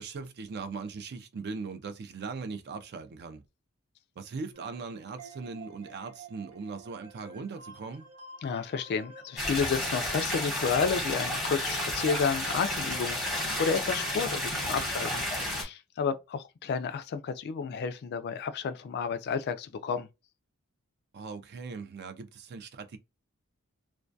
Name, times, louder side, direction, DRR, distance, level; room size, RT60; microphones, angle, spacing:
voice 1, 0.0-3.4 4.2-8.1 14.7-15.0 21.1-23.0, right 4 dB, 45° right, 0.4 m, -40 dB
sound 1, 4.5-14.6, right 3 dB, 90° right, 1.1 m, -50 dB
voice 2, 8.4-20.1, left 5 dB, 45° left, 0.3 m, -31 dB
sound 2, 9.4-15.6, left 1 dB, ahead, 0.9 m, -32 dB
2.2 x 2.2 x 2.6 m
head